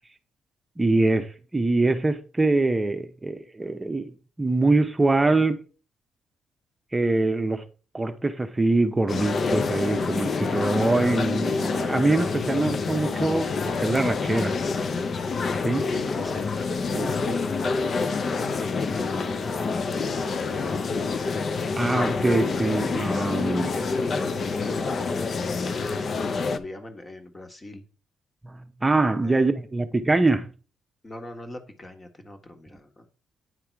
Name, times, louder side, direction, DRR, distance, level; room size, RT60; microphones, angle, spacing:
voice 1, 0.8-4.1 4.4-5.6 6.9-7.6 7.9-14.5 15.6-15.9 16.9-17.2 21.8-23.7 28.4-30.5, right 2 dB, 20° right, 0.7 m, -24 dB
sound 1, 9.1-26.6, left 4 dB, 50° left, 0.6 m, -27 dB
voice 2, 16.0-16.5 17.2-21.5 23.5-27.8 29.2-29.5 31.0-33.1, left 1 dB, 25° left, 1.5 m, -40 dB
9.6 x 3.5 x 4.6 m
cardioid pair, 90°, 0 cm